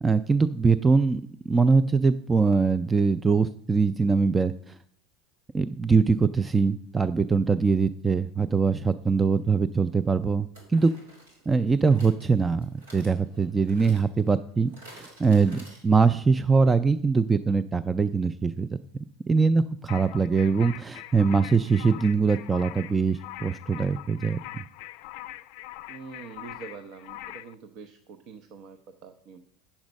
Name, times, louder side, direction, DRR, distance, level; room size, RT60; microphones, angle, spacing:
voice 1, 0.0-4.8 5.5-10.9 11.5-18.7 19.3-24.6, right 4 dB, 15° right, 13 dB, 0.3 m, -23 dB
sound 1, 9.4-9.5 10.5-16.3 16.6-16.7 16.9-17.0, right 1 dB, 90° right, 3.2 m, -52 dB
sound 2, 19.9-27.6, left 16 dB, 65° left, 0.4 m, -42 dB
voice 2, 25.9-29.4, right 5 dB, 55° right, 8 dB, 0.8 m, -45 dB
8.9 x 7.2 x 5.3 m, 0.63 s
hypercardioid pair, 100°, 0 cm